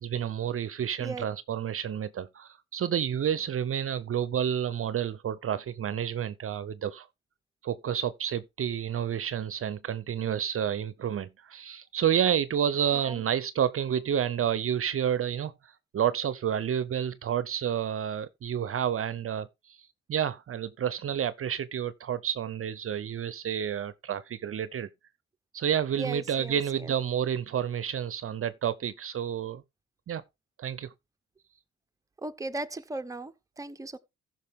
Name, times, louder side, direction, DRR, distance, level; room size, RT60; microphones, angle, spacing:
voice 1, 0.0-7.1 7.6-15.5 15.9-19.8 20.1-24.9 25.5-29.6 30.1-30.2 30.6-30.9, right 9 dB, 45° right, 0.7 m, -30 dB
voice 2, 26.0-26.9 32.2-34.0, right 2 dB, 10° right, 0.8 m, -37 dB
14.5 x 5.9 x 3.6 m
cardioid pair, 90°, 30 cm